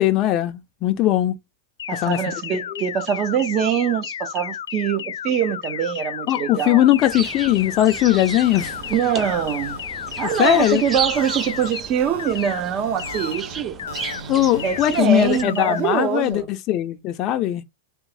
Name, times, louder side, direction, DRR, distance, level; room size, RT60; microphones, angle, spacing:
voice 1, 0.0-1.3 2.0-2.3 2.7-2.8 6.3-8.7 10.2-10.8 14.3-17.6, left 13 dB, 35° left, 0.5 m, -20 dB
sound 1, 1.8-11.8 12.2-12.6 13.0-13.4 13.8-14.2 14.6-15.0 15.4-15.8, left 9 dB, 90° left, 0.4 m, -32 dB
voice 2, 1.9-6.9 8.9-9.8 10.2-13.8 14.6-16.5, right 8 dB, 35° right, 0.9 m, -23 dB
sound 2, 7.0-15.4, right 6 dB, 20° right, 0.4 m, -34 dB
sound 3, 8.2-16.3, right 3 dB, 85° right, 1.3 m, -41 dB
3.6 x 3.0 x 3.3 m
supercardioid pair, 145°, 0 cm